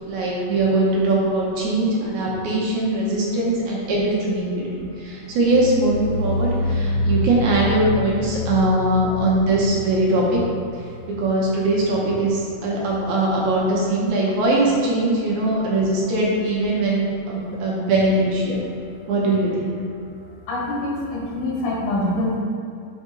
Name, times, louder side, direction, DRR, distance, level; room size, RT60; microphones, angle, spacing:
voice 1, 0.0-10.4 11.2-18.6 19.1-19.7, right 2 dB, 70° right, -4 dB, 2.2 m, -21 dB
sound 1, 5.2-12.3 12.6-13.1 13.4-13.5, left 1 dB, 65° left, 2.4 m, -27 dB
voice 2, 20.5-22.4, left 1 dB, 85° left, -4 dB, 2.8 m, -25 dB
6.3 x 4.3 x 3.7 m, 2.5 s
omnidirectional pair, 3.7 m